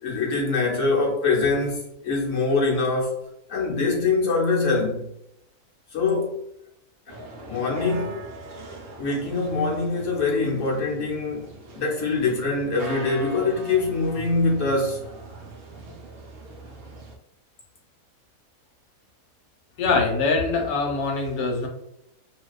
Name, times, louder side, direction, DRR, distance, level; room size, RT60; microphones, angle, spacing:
voice 1, 0.0-5.1 5.9-6.4 7.1-7.2 7.4-8.2 9.0-11.5 11.7-15.0, left 3 dB, 65° left, 1.0 m, -24 dB
sound 1, 7.1-17.2, right 2 dB, 85° right, 0.5 m, -41 dB
voice 2, 19.8-21.7, left 4 dB, 85° left, 1.1 m, -23 dB
2.5 x 2.2 x 2.3 m
omnidirectional pair, 1.5 m